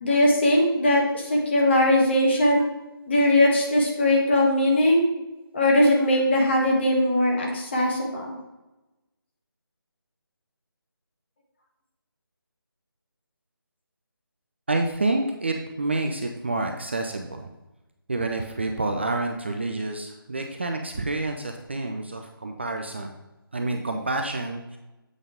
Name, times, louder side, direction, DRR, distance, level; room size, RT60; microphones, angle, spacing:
voice 1, 0.0-2.7 3.1-5.0 5.5-8.4, left 1 dB, 30° left, -1 dB, 1.3 m, -20 dB
voice 2, 14.7-17.5 18.1-23.1 23.5-24.8, right 2 dB, 30° right, 4 dB, 0.4 m, -28 dB
8.0 x 5.2 x 3.6 m, 1.0 s
figure-of-eight pair, 160°, 12 cm